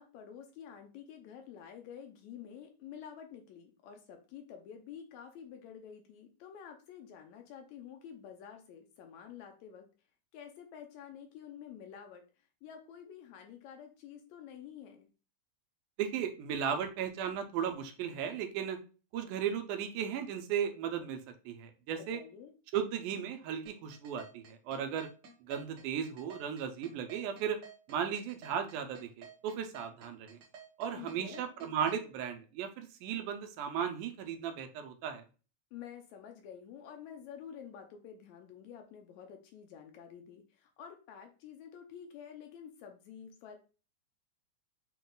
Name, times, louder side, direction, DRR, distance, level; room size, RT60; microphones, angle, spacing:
voice 1, 0.0-9.9 10.3-12.2 12.6-15.1 21.9-22.5 31.0-31.5 35.7-43.6, left 8 dB, 75° left, 4 dB, 1.8 m, -49 dB
voice 2, 16.0-18.8 19.1-21.2 21.5-22.2 22.7-25.1 25.4-27.6 27.9-30.4 30.8-35.2, right 8 dB, 90° right, 7 dB, 2.2 m, -36 dB
sound 1, 23.7-32.0, right 6 dB, 60° right, 1.1 m, -52 dB
6.2 x 2.3 x 3.8 m, 0.34 s
omnidirectional pair, 3.6 m